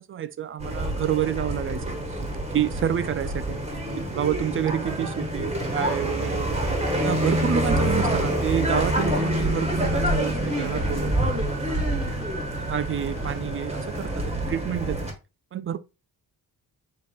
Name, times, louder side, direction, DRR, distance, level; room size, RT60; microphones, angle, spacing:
voice 1, 0.0-2.2 2.5-3.6 3.9-6.6 7.0-12.1 12.6-15.1 15.5-15.8, right 10 dB, 35° right, 0.4 m, -29 dB
sound 1, 0.6-15.1, right 1 dB, 15° right, 1.3 m, -27 dB
sound 2, 8.4-14.4, left 5 dB, 35° left, 0.8 m, -44 dB
5.3 x 4.0 x 2.3 m
wide cardioid pair, 150°, 37 cm